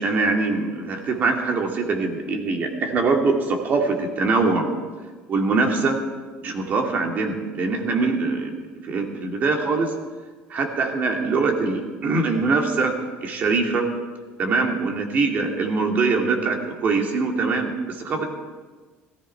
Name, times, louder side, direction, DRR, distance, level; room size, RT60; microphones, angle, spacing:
voice 1, 0.0-4.7 5.3-6.0 6.4-8.6 8.8-9.9 10.5-13.9 14.4-18.3, right 3 dB, 40° right, 2 dB, 2.4 m, -23 dB
17.0 x 14.5 x 4.6 m, 1.4 s
cardioid pair, 135°, 4 cm